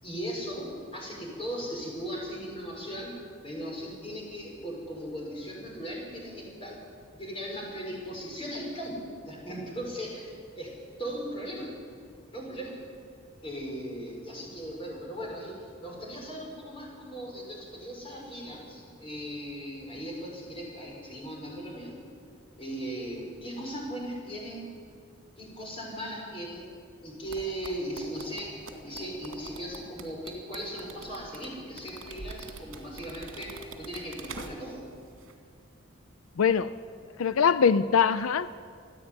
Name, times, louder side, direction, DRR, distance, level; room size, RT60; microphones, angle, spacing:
voice 1, 0.0-3.1 3.4-6.8 7.1-10.7 11.0-11.7 12.3-12.7 13.4-21.9 22.6-24.6 25.4-26.7 27.0-34.8, equal, 25° left, -3 dB, 6.4 m, -38 dB
sound 1, 27.3-34.8 35.1-35.3, right 3 dB, 80° right, 2.5 m, -44 dB
voice 2, 36.4-36.7 37.2-38.5, left 6 dB, 90° left, 14 dB, 0.5 m, -22 dB
28.5 x 11.0 x 9.6 m, 2.2 s
head